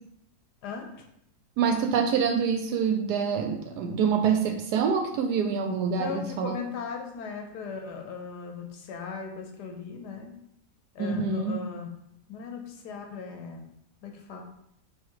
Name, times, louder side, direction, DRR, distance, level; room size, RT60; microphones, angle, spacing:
voice 1, 0.6-1.0 5.9-10.3 10.9-11.9 12.3-13.6 14.0-14.4, left 5 dB, 85° left, 3 dB, 1.4 m, -38 dB
voice 2, 1.6-6.6 11.0-11.6, right 6 dB, 85° right, 4 dB, 1.2 m, -26 dB
6.8 x 3.2 x 4.8 m, 0.75 s
omnidirectional pair, 1.7 m